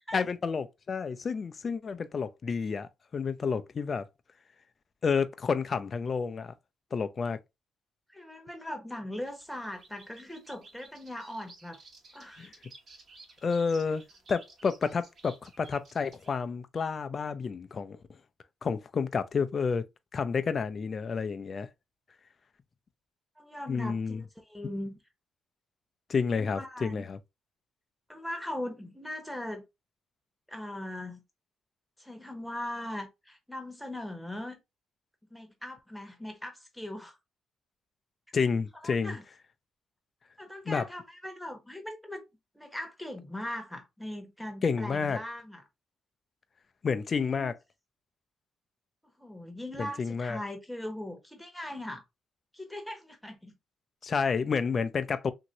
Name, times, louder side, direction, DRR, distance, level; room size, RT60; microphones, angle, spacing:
voice 1, 0.1-4.1 5.0-6.5 6.9-7.4 12.4-12.5 13.4-14.0 14.3-18.0 18.6-19.9 20.1-21.7 23.7-24.2 26.1-27.2 38.3-39.1 40.7-40.8 44.6-45.2 46.8-47.5 49.8-50.4 54.0-55.3, left 5 dB, 40° left, 0.4 m, -30 dB
voice 2, 8.1-11.8 12.1-12.4 23.4-25.0 26.4-27.1 28.1-29.6 30.5-31.2 32.0-34.6 35.3-37.2 38.8-39.2 40.4-42.2 42.5-45.6 47.1-47.5 49.2-52.0 52.5-53.5, left 1 dB, 5° left, 0.9 m, -40 dB
sound 1, 9.3-16.3, right 3 dB, 55° right, 1.1 m, -54 dB
2.9 x 2.6 x 2.8 m
cardioid pair, 90°, 0 cm